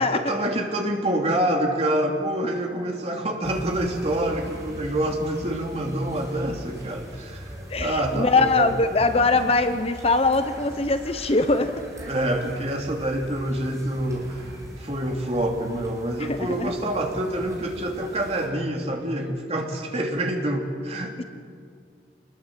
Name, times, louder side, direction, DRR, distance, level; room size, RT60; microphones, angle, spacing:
voice 1, 0.0-8.7 12.0-21.2, right 1 dB, 35° right, 2 dB, 2.9 m, -27 dB
sound 1, 3.4-18.5, equal, 20° right, 5.4 m, -41 dB
voice 2, 7.7-11.8 16.2-16.7 21.2-21.3, left 3 dB, 35° left, 9 dB, 0.9 m, -22 dB
27.0 x 21.0 x 7.7 m, 2.1 s
head